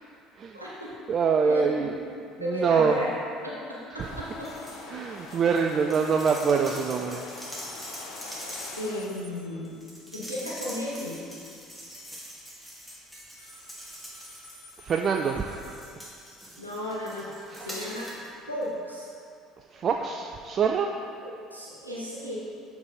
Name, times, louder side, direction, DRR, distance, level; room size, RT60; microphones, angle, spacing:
voice 1, 0.5-1.0 1.4-2.1 2.4-3.1 3.4-3.6 3.9-4.5 8.8-9.7 10.1-11.2 16.6-17.3 17.6-18.2 18.5-19.1 21.2-22.4, left 1 dB, 90° right, -7 dB, 0.9 m, -34 dB
voice 2, 1.1-2.0 2.4-3.0 3.9-4.1 4.9-7.2 8.3-8.5 14.8-15.8 17.5-17.7 19.7-20.9, right 6 dB, 40° right, 3 dB, 0.3 m, -25 dB
sound 1, 4.0-9.1, left 5 dB, 60° left, 0.4 m, -44 dB
sound 2, 4.4-4.9 5.2-14.9 15.4-18.3 18.6-18.7, equal, ahead, 1.4 m, -43 dB
sound 3, 7.4-10.8 13.4-16.8, left 1 dB, 75° left, 0.8 m, -52 dB
6.8 x 4.6 x 4.0 m, 2.4 s
figure-of-eight pair, 60°, 0 cm